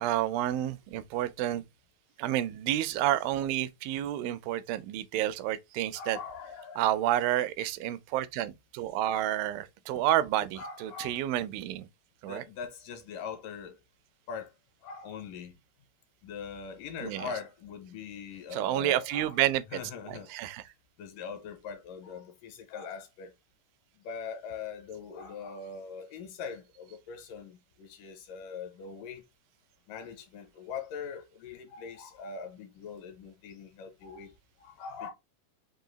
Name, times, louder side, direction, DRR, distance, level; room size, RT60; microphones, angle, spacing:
voice 1, 0.0-1.6 2.2-6.2 6.8-11.9 12.2-12.4 17.0-17.3 18.5-19.8 20.1-20.6, right 13 dB, 85° right, 2.3 m, -30 dB
voice 2, 5.9-6.9 10.6-11.2 12.2-13.8 14.3-14.5 14.8-15.5 16.2-19.4 19.7-20.3 21.0-23.3 24.0-29.2 29.9-34.3 34.6-35.1, left 6 dB, 75° left, 2.4 m, -42 dB
5.5 x 2.5 x 3.8 m
omnidirectional pair, 4.0 m